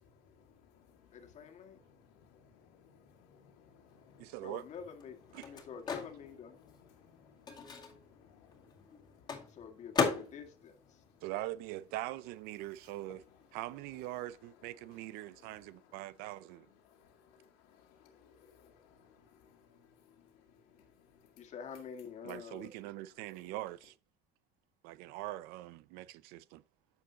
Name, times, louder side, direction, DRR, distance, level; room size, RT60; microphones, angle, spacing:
voice 1, 1.1-1.8 4.4-5.2 5.4-6.6 9.5-10.8 21.4-22.7, left 7 dB, 50° left, 1.9 m, -47 dB
voice 2, 2.8-4.2 6.6-7.3 8.2-8.5 17.7-18.1 18.4-18.8, left 6 dB, 85° left, 1.8 m, -62 dB
Microwave oven, 4.0-12.1 12.4-14.3, left 5 dB, 25° left, 2.2 m, -40 dB
voice 3, 4.2-4.6 5.3-5.5 11.2-13.2 13.5-16.7 22.2-23.9 24.8-26.6, right 16 dB, 80° right, 0.5 m, -42 dB
10.0 x 7.1 x 2.9 m
cardioid pair, 115°, 16 cm